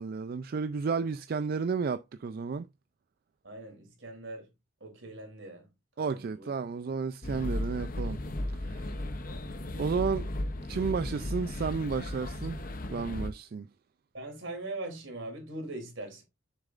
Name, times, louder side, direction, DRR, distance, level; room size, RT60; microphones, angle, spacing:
voice 1, 0.0-2.7 6.0-8.2 8.5-9.0 9.8-10.3 10.7-13.7, right 5 dB, 50° right, 0.3 m, -32 dB
voice 2, 3.4-4.5 4.8-5.7 6.0-6.5 14.1-16.2, right 2 dB, 75° right, 3.1 m, -41 dB
sound 1, 7.2-13.3, left 1 dB, 45° left, 0.7 m, -35 dB
7.4 x 6.5 x 2.5 m
head